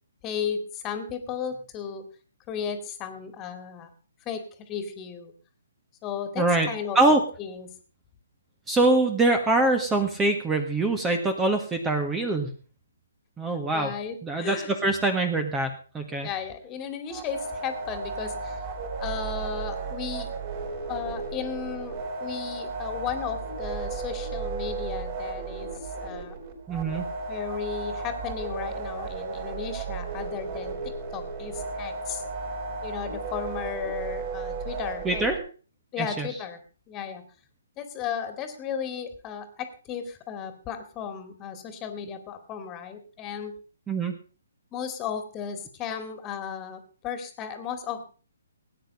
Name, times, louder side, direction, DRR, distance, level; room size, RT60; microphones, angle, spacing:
voice 1, 0.2-2.0 2.5-3.9 4.3-5.3 6.0-7.0 7.4-7.7 13.7-14.7 16.2-18.7 19.0-20.3 20.9-26.3 27.3-30.8 31.1-32.2 32.8-35.3 35.9-36.6 36.9-37.2 37.8-43.6 44.7-48.0, left 7 dB, 20° left, 9 dB, 2.3 m, -35 dB
voice 2, 6.4-6.7 6.9-7.2 8.7-12.5 13.4-13.9 14.2-16.3 26.7-27.0 35.0-35.4 36.0-36.3 43.9-44.1, right 2 dB, 10° right, 6 dB, 1.5 m, -24 dB
sound 1, 17.1-35.4, right 4 dB, 40° right, 5.1 m, -34 dB
18.5 x 9.5 x 5.4 m, 0.39 s
figure-of-eight pair, 135°, 0 cm